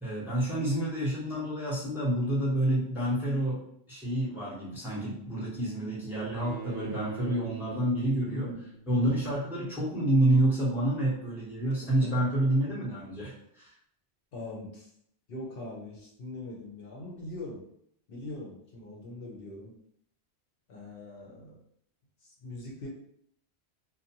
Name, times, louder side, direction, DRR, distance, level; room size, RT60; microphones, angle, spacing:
voice 1, 0.0-3.6 3.9-8.5 8.9-13.7, right 1 dB, ahead, -6 dB, 0.7 m, -28 dB
Bowed string instrument, 6.4-9.4, right 4 dB, 85° right, 0.9 m, -42 dB
voice 2, 8.3-8.7 11.7-11.8 12.0-12.2 14.3-14.9 15.3-17.7 18.1-19.8 20.7-21.6 22.2-22.9, left 1 dB, 60° left, -3 dB, 0.8 m, -41 dB
2.5 x 2.1 x 2.8 m, 0.70 s
omnidirectional pair, 1.1 m